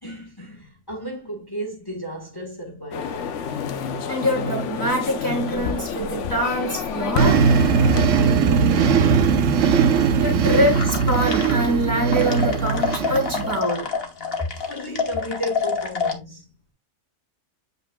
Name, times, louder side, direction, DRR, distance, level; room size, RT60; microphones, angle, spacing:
voice 1, 0.0-3.4 8.1-9.0 14.4-16.5, equal, 20° left, 1.5 m, -33 dB
sound 1, 2.9-8.1, left 6 dB, 75° left, 1.0 m, -29 dB
voice 2, 4.1-7.5 10.2-13.9, equal, 20° right, 2.9 m, -24 dB
sound 2, 7.2-13.6, right 6 dB, 80° right, 1.1 m, -19 dB
sound 3, 10.7-11.8 12.1-16.1, left 5 dB, 50° left, 1.4 m, -27 dB
7.9 x 5.4 x 2.3 m
omnidirectional pair, 1.3 m